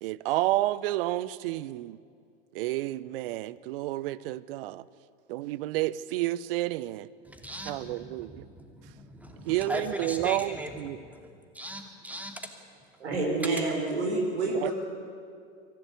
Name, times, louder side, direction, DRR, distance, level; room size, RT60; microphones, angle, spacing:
voice 1, 0.0-2.0 2.5-4.8 5.3-7.1 7.7-8.4 9.4-11.0 14.5-14.7, right 16 dB, 55° right, 20 dB, 0.8 m, -30 dB
voice 2, 7.2-12.4, right 1 dB, 5° right, 4 dB, 2.8 m, -39 dB
voice 3, 13.0-14.7, right 3 dB, 75° right, 0 dB, 5.4 m, -28 dB
24.0 x 15.5 x 9.3 m, 2.2 s
hypercardioid pair, 95°, 34 cm